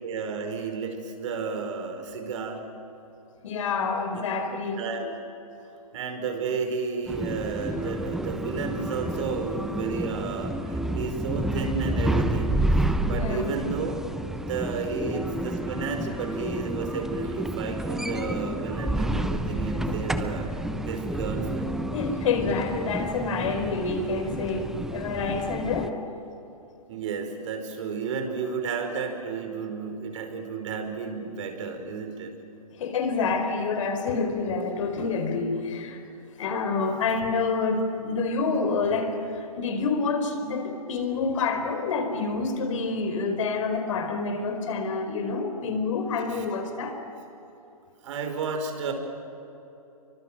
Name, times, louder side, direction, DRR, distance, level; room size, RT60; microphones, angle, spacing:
voice 1, 0.0-2.6 4.8-5.1 5.9-12.6 13.0-14.0 14.5-20.5 20.9-21.7 26.9-32.3 46.3-46.4 48.0-48.9, right 5 dB, 55° right, 5 dB, 5.2 m, -32 dB
voice 2, 3.4-4.8 13.1-13.5 19.7-20.0 21.9-26.0 32.7-36.0 36.4-47.0, left 4 dB, 55° left, 6 dB, 4.7 m, -28 dB
sound 1, 7.1-25.9, right 1 dB, ahead, 1.0 m, -30 dB
29.0 x 24.5 x 7.6 m, 3.0 s
hypercardioid pair, 130°, 19 cm